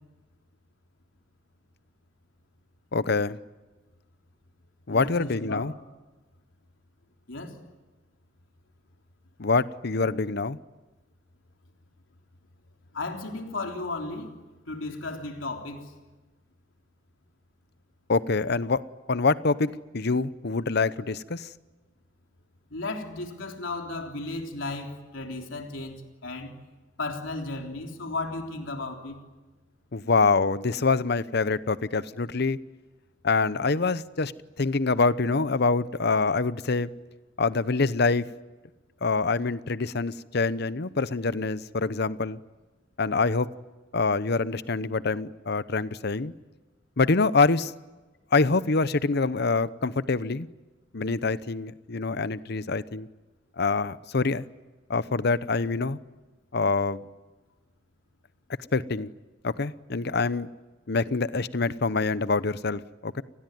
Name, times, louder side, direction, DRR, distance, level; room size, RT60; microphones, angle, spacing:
voice 1, 2.9-3.4 4.9-5.7 9.4-10.6 18.1-18.8 19.1-21.5 29.9-32.6 33.2-34.3 34.6-36.9 37.4-38.3 39.0-42.4 43.0-43.5 43.9-46.3 47.0-47.7 48.3-50.5 50.9-53.1 53.6-54.4 54.9-56.0 56.5-57.0 58.7-59.1 59.4-60.5 60.9-63.2, left 4 dB, 60° left, 16 dB, 0.8 m, -25 dB
voice 2, 4.9-5.7 7.3-7.6 12.9-14.3 14.7-15.9 22.7-26.5 27.0-29.2, left 2 dB, 85° left, 3 dB, 3.5 m, -34 dB
29.5 x 20.0 x 9.4 m, 1.2 s
head